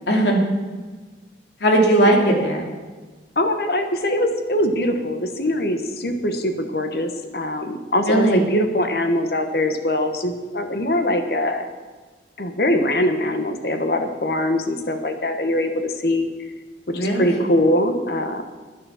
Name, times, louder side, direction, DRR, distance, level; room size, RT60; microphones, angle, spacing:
voice 1, 0.1-0.4 1.6-2.7 8.1-8.4 16.9-17.4, right 1 dB, 75° left, 1 dB, 2.6 m, -18 dB
voice 2, 3.4-11.7 12.4-16.3 16.9-18.4, left 1 dB, 60° left, 7 dB, 1.1 m, -22 dB
10.5 x 10.0 x 7.1 m, 1.4 s
head